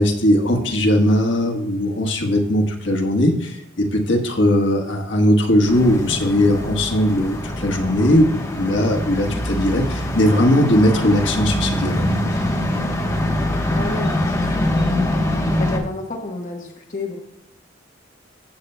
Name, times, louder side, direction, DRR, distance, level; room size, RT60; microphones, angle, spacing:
voice 1, 0.0-12.1, left 1 dB, 65° left, 2 dB, 1.4 m, -18 dB
sound 1, 5.7-15.8, left 1 dB, 15° left, 1.1 m, -23 dB
voice 2, 13.7-15.2 15.6-17.2, left 2 dB, 40° left, -1 dB, 1.2 m, -31 dB
15.0 x 7.6 x 2.2 m, 0.78 s
head